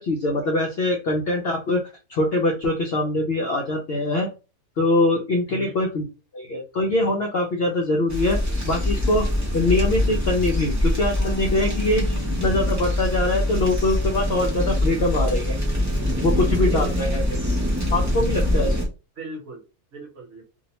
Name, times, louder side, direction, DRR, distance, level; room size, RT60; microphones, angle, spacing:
voice 1, 0.0-1.8 2.1-4.3 4.8-6.1 6.3-9.3 9.5-12.0 12.4-15.5 16.2-17.2 17.9-18.8, left 2 dB, 65° left, 1 dB, 0.6 m, -23 dB
sound 1, 8.1-18.9, left 1 dB, 20° right, 0.4 m, -24 dB
sound 2, 9.2-9.8 11.2-13.2, equal, 35° left, 0.8 m, -36 dB
voice 2, 16.9-17.6 19.2-19.6 19.9-20.5, right 1 dB, 55° right, 0 dB, 1.1 m, -40 dB
2.6 x 2.0 x 2.8 m, 0.30 s
omnidirectional pair, 1.5 m